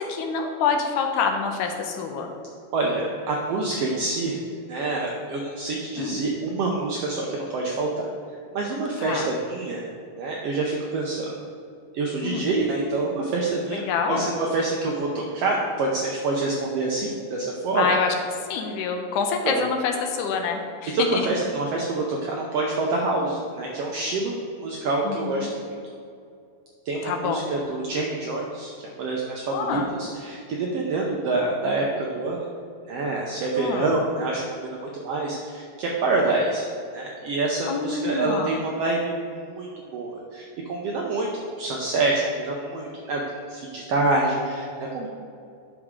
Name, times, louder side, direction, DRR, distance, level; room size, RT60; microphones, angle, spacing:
voice 1, 0.0-2.3 6.0-6.2 9.0-9.3 12.2-12.5 13.7-14.3 17.8-18.1 18.5-21.3 25.0-25.5 27.0-27.5 29.5-29.9 33.6-33.9 37.7-38.6, left 5 dB, 85° left, 4 dB, 2.2 m, -26 dB
voice 2, 2.7-4.4 4.7-8.1 8.5-9.9 10.2-11.3 11.9-13.8 14.1-17.9 19.4-19.6 20.9-24.3 24.6-25.7 26.9-32.4 32.9-34.8 35.0-36.7 36.9-39.7 39.9-41.3 41.6-43.2 43.5-45.1, right 3 dB, 80° right, -1 dB, 1.4 m, -26 dB
8.1 x 6.3 x 3.6 m, 2.5 s
omnidirectional pair, 3.6 m